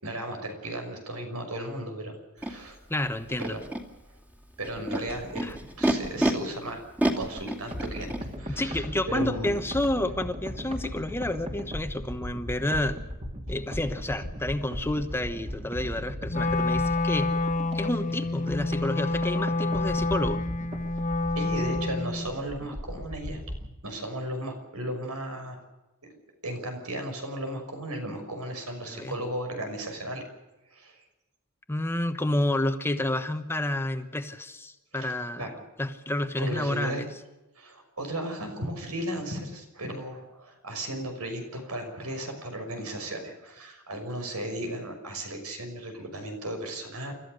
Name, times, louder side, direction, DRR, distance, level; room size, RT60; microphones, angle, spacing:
voice 1, 0.0-2.8 3.4-3.6 4.6-5.4 5.8-6.8 7.2-8.1 8.4-9.6 21.3-23.4 23.8-25.6 26.4-30.2 30.7-31.0 34.9-35.1 35.4-35.6 36.4-37.0 37.6-47.1, right 1 dB, 85° right, 5 dB, 6.1 m, -35 dB
Animal, 2.4-2.5 3.3-3.8 4.6-6.3 7.0-8.2, right 1 dB, 5° right, 2.5 m, -28 dB
voice 2, 2.9-3.6 5.4-5.6 8.5-13.0 13.5-17.4 17.7-20.4 28.8-29.1 31.7-35.5 35.8-37.1, left 1 dB, 10° left, 8 dB, 1.2 m, -30 dB
sound 1, 7.7-23.7, equal, 30° right, 2.9 m, -38 dB
Wind instrument woodwind instrument, 16.3-22.3, left 2 dB, 35° left, 0.9 m, -28 dB
30.0 x 14.0 x 6.7 m, 1.0 s
head